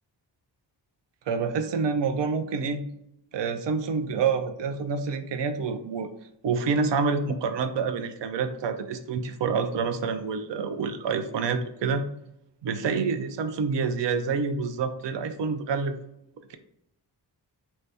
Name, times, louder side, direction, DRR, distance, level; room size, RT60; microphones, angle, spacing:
voice 1, 1.3-2.9 3.3-6.1 6.4-12.0 12.6-15.9 16.5-16.6, right 5 dB, 75° right, 9 dB, 0.6 m, -27 dB
4.4 x 2.7 x 3.4 m, 0.80 s
wide cardioid pair, 105°, 43 cm